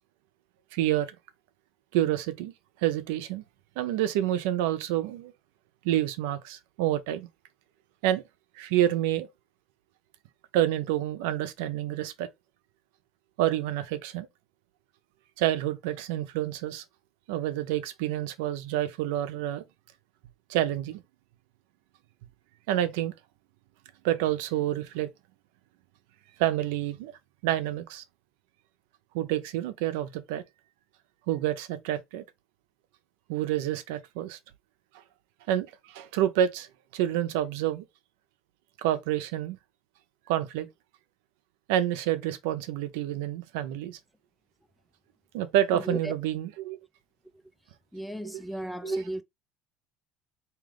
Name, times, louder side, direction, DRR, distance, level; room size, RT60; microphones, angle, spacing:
voice 1, 0.7-1.1 1.9-2.5 2.8-3.4 3.8-5.3 5.8-7.3 8.0-8.2 8.6-9.3 10.5-12.3 13.4-14.3 15.4-16.8 17.3-19.6 20.5-21.0 22.7-23.1 24.0-25.1 26.4-27.1 27.4-28.0 29.1-30.4 31.3-32.2 33.3-34.4 35.5-36.7 36.9-37.8 38.8-39.6 40.3-40.7 41.7-44.0 45.3-46.8 48.8-48.9, right 12 dB, 90° right, 0.6 m, -28 dB
voice 2, 45.7-46.1 47.9-49.2, right 1 dB, 5° left, 0.4 m, -34 dB
3.8 x 2.9 x 3.3 m
cardioid pair, 140°, 0 cm